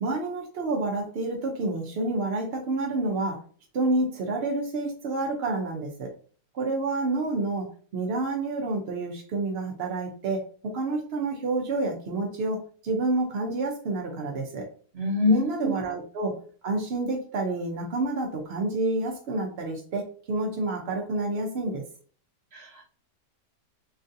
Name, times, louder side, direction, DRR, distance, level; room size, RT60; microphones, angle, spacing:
voice 1, 0.0-3.4 3.7-6.1 6.5-7.7 7.9-14.6 15.3-16.4 16.6-21.8, right 2 dB, 75° right, 1 dB, 0.5 m, -29 dB
voice 2, 14.9-15.8 22.5-22.8, left 3 dB, 50° right, -1 dB, 0.9 m, -25 dB
3.0 x 2.5 x 2.6 m, 0.42 s
omnidirectional pair, 1.8 m